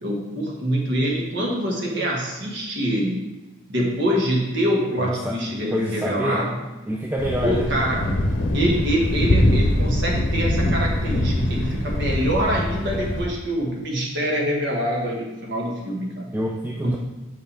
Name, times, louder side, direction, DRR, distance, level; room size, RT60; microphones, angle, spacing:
voice 1, 0.0-3.2 3.7-6.5 7.4-8.2 8.5-16.3 16.8-16.9, equal, 60° right, -2 dB, 1.6 m, -25 dB
voice 2, 5.0-5.4 5.7-6.5 6.9-7.8 16.3-17.0, equal, 10° right, -2 dB, 0.4 m, -27 dB
Thunder, 7.2-13.3, left 1 dB, 70° left, 0.8 m, -23 dB
7.1 x 5.7 x 3.4 m, 1.1 s
head